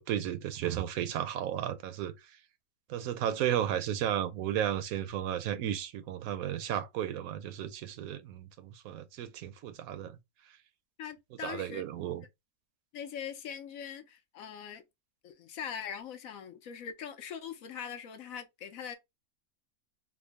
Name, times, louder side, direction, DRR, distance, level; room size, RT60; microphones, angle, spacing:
voice 1, 0.0-2.1 2.9-10.2 11.4-12.2, right 10 dB, 75° right, 1.0 m, -34 dB
voice 2, 11.0-11.8 12.9-14.8 15.2-19.0, left 8 dB, 70° left, 1.1 m, -41 dB
3.6 x 2.0 x 3.4 m
omnidirectional pair, 1.5 m